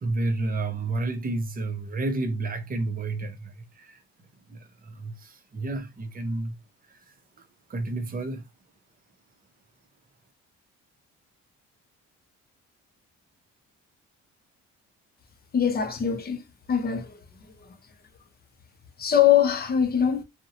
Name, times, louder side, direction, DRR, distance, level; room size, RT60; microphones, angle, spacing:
voice 1, 0.0-4.0 4.5-6.5 6.9-7.0 7.7-8.4, right 2 dB, 30° right, 0.6 m, -30 dB
voice 2, 15.5-16.4 16.7-17.2 17.6-17.7 19.0-20.2, left 9 dB, 30° left, 0.5 m, -22 dB
2.6 x 2.1 x 2.7 m
cardioid pair, 90°, 30 cm